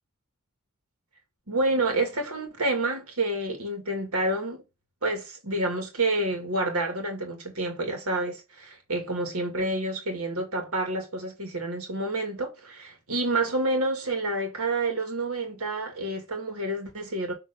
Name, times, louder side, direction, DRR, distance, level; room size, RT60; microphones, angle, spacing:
voice 1, 1.5-4.6 5.0-17.3, right 2 dB, 85° right, 2.1 m, -28 dB
6.9 x 3.4 x 5.4 m
head